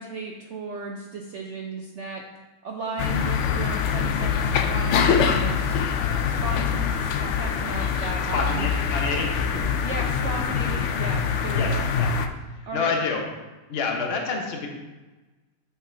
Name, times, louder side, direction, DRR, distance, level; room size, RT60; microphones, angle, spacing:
voice 1, 0.0-2.2 2.6-5.8 6.3-8.7 9.8-11.9 12.7-13.0, right 3 dB, 60° right, 0 dB, 0.8 m, -34 dB
sound 1, 3.0-12.3, left 6 dB, 80° left, 0.6 m, -24 dB
voice 2, 8.3-9.6 11.6-11.7 12.0-12.1 12.7-13.2 13.7-14.7, left 4 dB, 40° left, 1 dB, 1.1 m, -27 dB
8.9 x 6.5 x 2.7 m, 1.2 s
omnidirectional pair, 1.8 m